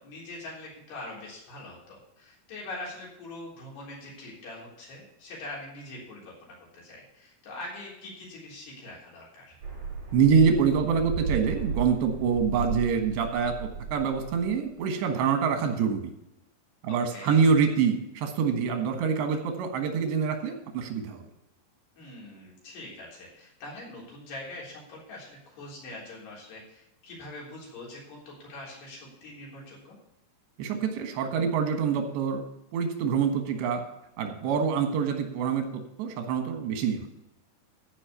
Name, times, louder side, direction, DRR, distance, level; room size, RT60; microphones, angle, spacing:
voice 1, 0.0-9.6 16.9-17.4 22.0-30.0, left 2 dB, 75° left, -4 dB, 5.9 m, -43 dB
sound 1, 9.6-14.7, right 5 dB, 60° right, 6.3 m, -34 dB
voice 2, 10.1-16.1 16.8-21.3 30.6-32.4 32.7-33.8 34.2-35.7 36.0-37.1, right 6 dB, 90° right, 5 dB, 3.6 m, -25 dB
14.0 x 5.2 x 7.0 m, 0.85 s
omnidirectional pair, 4.8 m